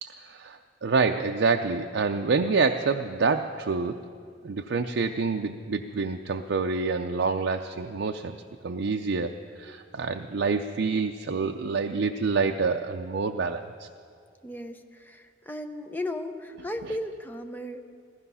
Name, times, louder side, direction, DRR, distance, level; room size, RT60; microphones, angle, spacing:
voice 1, 0.0-4.0 4.4-8.4 8.6-9.3 9.6-13.9, right 4 dB, 70° right, 4 dB, 0.5 m, -27 dB
voice 2, 14.4-17.8, left 1 dB, 10° left, 6 dB, 0.7 m, -35 dB
15.0 x 14.5 x 5.6 m, 2.2 s
head